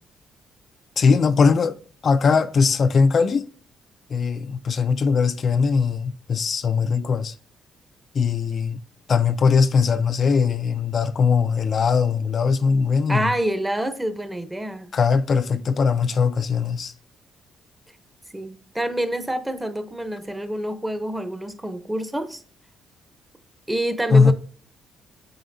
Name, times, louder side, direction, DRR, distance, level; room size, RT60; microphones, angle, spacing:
voice 1, 1.0-1.8 2.0-3.4 4.1-7.3 8.1-8.8 9.1-13.3 14.9-16.9 24.1-24.3, left 5 dB, 50° left, 0.4 m, -20 dB
voice 2, 13.1-14.9 18.3-22.4 23.7-24.3, right 1 dB, 10° right, 0.8 m, -27 dB
7.7 x 4.8 x 2.6 m
cardioid pair, 90°, 0 cm